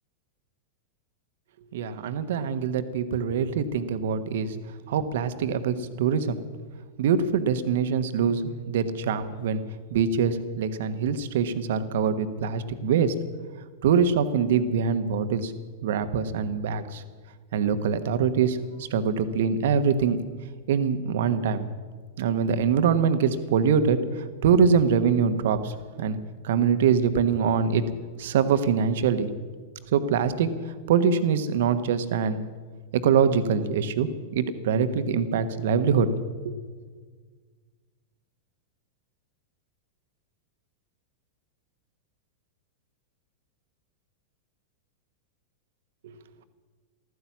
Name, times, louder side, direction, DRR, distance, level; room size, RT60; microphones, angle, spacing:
voice 1, 1.7-4.5 4.9-6.4 7.0-9.6 9.9-13.1 13.8-15.5 15.8-17.0 17.5-20.2 20.7-21.6 22.2-26.2 26.4-27.8 28.2-29.3 29.9-30.5 30.9-32.4 32.9-36.1 36.4-36.6 46.0-46.1, right 6 dB, 60° right, 11 dB, 1.2 m, -24 dB
14.5 x 14.0 x 7.2 m, 1.5 s
figure-of-eight pair, 95°, 0 cm